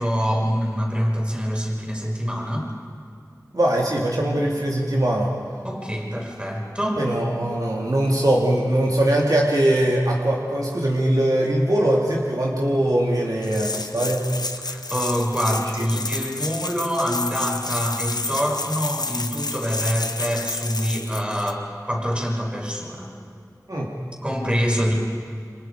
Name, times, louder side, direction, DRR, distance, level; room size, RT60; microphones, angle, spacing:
voice 1, 0.0-2.7 5.6-7.0 7.7-7.9 14.6-23.1 24.2-24.9, equal, 15° right, -2 dB, 5.9 m, -25 dB
voice 2, 3.5-5.3 7.0-14.2 15.8-15.9 23.7-23.9, right 1 dB, 65° right, -3 dB, 2.7 m, -21 dB
sound 1, 13.4-21.5, left 3 dB, 80° left, 1.0 m, -30 dB
28.5 x 25.5 x 5.0 m, 2.3 s
wide cardioid pair, 40°, 7 cm